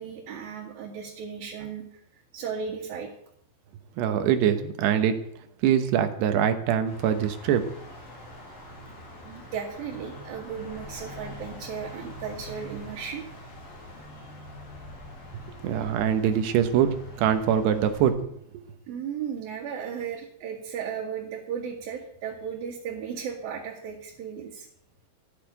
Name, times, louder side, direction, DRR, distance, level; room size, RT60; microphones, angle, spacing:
voice 1, 0.0-2.0 2.3-3.1 9.3-13.3 18.9-24.7, right 7 dB, 65° right, -3 dB, 3.5 m, -35 dB
voice 2, 4.0-5.2 5.6-7.6 15.6-18.2, right 9 dB, 80° right, 8 dB, 3.1 m, -23 dB
sound 1, 6.8-18.1, left 1 dB, 60° left, 6.0 m, -44 dB
14.5 x 6.7 x 9.1 m, 0.70 s
omnidirectional pair, 4.8 m